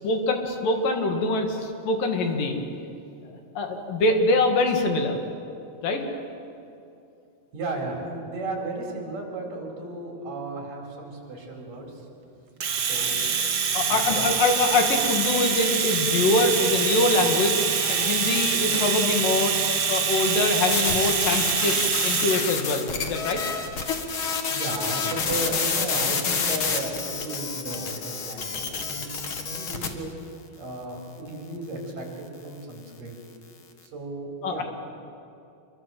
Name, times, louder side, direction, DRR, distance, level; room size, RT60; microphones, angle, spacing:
voice 1, 0.0-2.6 3.2-5.2 5.8-6.0 13.7-17.6 17.9-19.5 19.9-21.8 22.0-23.4 34.4-34.6, left 2 dB, 55° left, 4 dB, 3.4 m, -24 dB
voice 2, 7.5-12.1 12.7-13.4 13.8-14.4 24.5-33.1 33.8-34.6, right 2 dB, 50° right, 1 dB, 5.8 m, -35 dB
Domestic sounds home sounds, 12.6-22.5, right 6 dB, 65° right, 1.4 m, -25 dB
sound 1, 17.8-18.9 20.7-29.9, left 5 dB, 75° left, 1.2 m, -29 dB
26.5 x 23.0 x 7.8 m, 2.7 s
omnidirectional pair, 5.2 m